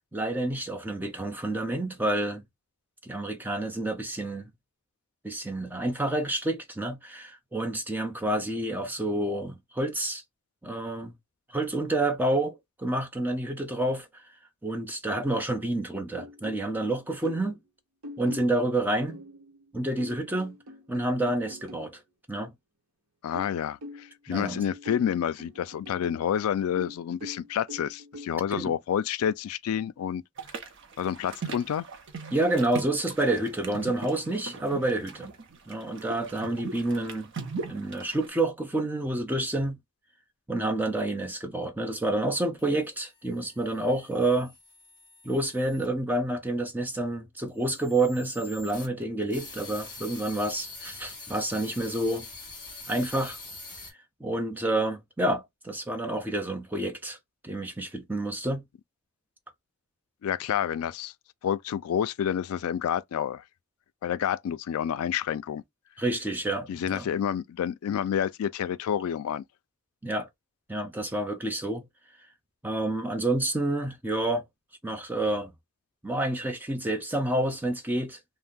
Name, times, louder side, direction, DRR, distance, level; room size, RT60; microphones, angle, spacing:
voice 1, 0.1-2.4 3.0-4.4 5.2-10.2 10.6-11.1 11.5-14.2 14.6-17.6 18.2-19.2 19.7-20.6 20.9-22.0 22.3-22.5 24.3-24.6 28.6-28.7 32.3-35.3 35.7-37.3 37.7-39.8 40.5-44.5 45.2-52.3 52.9-53.4 54.2-57.2 57.4-58.6 66.0-67.1 70.0-70.3 70.7-71.9 72.6-74.4 74.8-75.5 76.0-78.2, right 1 dB, 10° right, 0.5 m, -29 dB
sound 1, 16.2-17.6 18.0-21.9 23.3-26.3 26.8-28.3, left 1 dB, 85° right, 0.9 m, -44 dB
voice 2, 23.2-30.2 31.0-31.9 60.2-61.1 61.4-63.4 64.0-65.6 66.7-69.4, left 9 dB, 80° left, 0.3 m, -29 dB
sound 2, 30.4-38.3, right 4 dB, 55° right, 0.6 m, -40 dB
sound 3, 42.6-45.9 47.5-53.9, left 3 dB, 20° left, 1.5 m, -45 dB
2.6 x 2.1 x 3.5 m
head